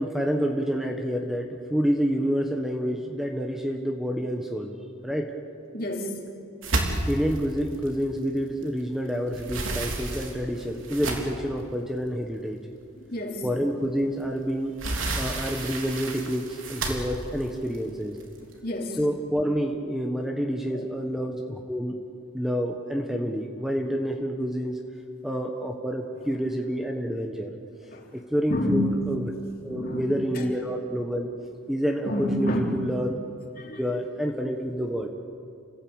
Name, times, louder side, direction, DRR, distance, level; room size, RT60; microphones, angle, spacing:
voice 1, 0.0-4.7 5.0-5.3 7.0-12.6 13.4-14.7 15.2-18.2 19.0-21.9 22.3-24.8 25.2-27.6 28.1-29.3 29.6-31.3 31.7-33.2 33.8-35.1, equal, ahead, 2 dB, 1.3 m, -28 dB
voice 2, 5.7-6.2 13.1-13.5 18.4-19.0 20.7-20.9 27.9-28.1 28.5-29.0 29.7-30.5 32.1-32.8 33.6-33.8, left 1 dB, 50° left, 0 dB, 3.6 m, -29 dB
sound 1, 6.6-8.8 9.1-11.5 12.2-12.3 12.7-12.8 14.2-18.5, right 2 dB, 85° right, 3.6 m, -31 dB
29.0 x 16.5 x 9.0 m, 2.4 s
head